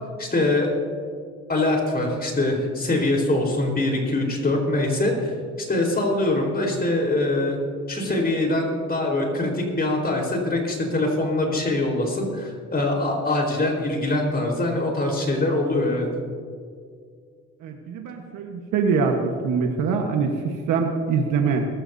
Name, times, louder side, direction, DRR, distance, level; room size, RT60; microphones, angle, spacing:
voice 1, 0.2-0.7 1.5-7.6 7.9-16.1, left 2 dB, 30° left, 0 dB, 4.3 m, -23 dB
voice 2, 17.6-21.7, right 5 dB, 90° right, 3 dB, 1.4 m, -24 dB
21.5 x 14.0 x 2.7 m, 2.1 s
cardioid pair, 90°, 30 cm